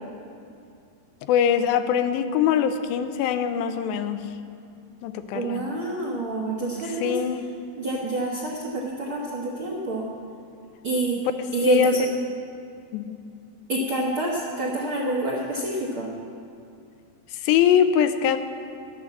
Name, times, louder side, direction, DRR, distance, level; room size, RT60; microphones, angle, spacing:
voice 1, 1.2-4.3 5.0-5.7 6.9-7.5 11.7-11.9 12.9-13.2 17.3-18.4, left 9 dB, 85° left, 9 dB, 2.4 m, -23 dB
voice 2, 5.3-7.1 7.7-10.1 10.8-11.2 11.5-12.1 13.7-16.1, right 1 dB, 65° right, -4 dB, 1.3 m, -26 dB
12.0 x 9.3 x 7.1 m, 2.5 s
omnidirectional pair, 4.2 m